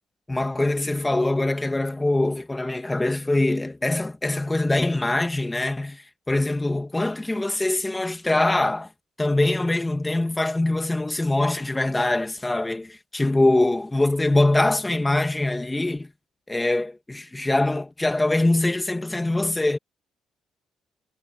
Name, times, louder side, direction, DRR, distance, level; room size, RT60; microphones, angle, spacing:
voice 1, 0.3-8.9 9.2-16.1 16.5-19.8, left 2 dB, 15° left, 2.0 m, -23 dB
cardioid pair, 90°, 0 cm